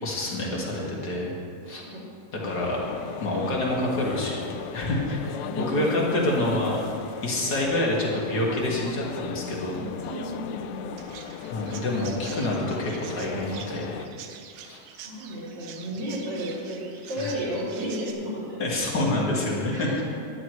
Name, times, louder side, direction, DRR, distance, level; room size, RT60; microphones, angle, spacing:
voice 1, 0.0-1.3 1.7-1.8 2.4-2.8 3.2-4.5 4.7-5.2 5.6-6.8 7.2-9.8 11.5-14.0 14.6-14.8 17.2-17.3 18.6-20.0, left 1 dB, 35° left, -3 dB, 2.0 m, -27 dB
sound 1, 2.4-14.1, left 8 dB, 90° left, 1.5 m, -37 dB
voice 2, 5.5-6.4 9.7-11.0 14.9-18.6 19.7-20.0, equal, 50° right, -10 dB, 4.0 m, -33 dB
Chirp tweet, 11.0-18.1, right 8 dB, 90° right, 2.5 m, -45 dB
18.5 x 11.0 x 3.2 m, 2.4 s
omnidirectional pair, 3.9 m